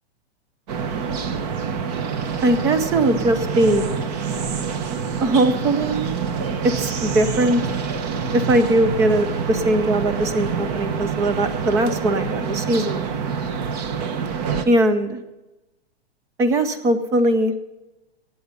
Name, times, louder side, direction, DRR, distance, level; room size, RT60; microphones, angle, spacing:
sound 1, 0.7-14.6, right 6 dB, 40° right, 1.1 m, -26 dB
voice 1, 2.4-3.9 5.2-6.1 6.6-7.6 8.3-13.0 14.7-15.2 16.4-17.5, right 1 dB, 10° right, 12 dB, 0.4 m, -20 dB
18.0 x 8.7 x 5.2 m, 1.0 s
hypercardioid pair, 155°, 33 cm